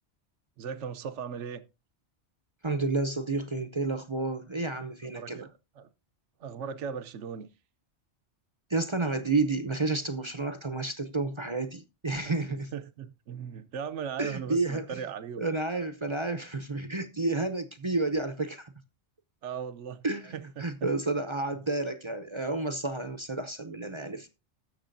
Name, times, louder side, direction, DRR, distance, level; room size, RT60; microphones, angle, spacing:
voice 1, 0.6-1.6 5.0-5.9 6.4-7.5 12.7-15.5 19.4-20.0 20.3-20.9, right 7 dB, 80° right, 1.1 m, -38 dB
voice 2, 2.6-5.5 8.7-12.7 14.2-15.0 15.4-18.7 20.0-24.3, right 3 dB, 30° right, 0.6 m, -30 dB
19.0 x 6.7 x 2.6 m
omnidirectional pair, 1.2 m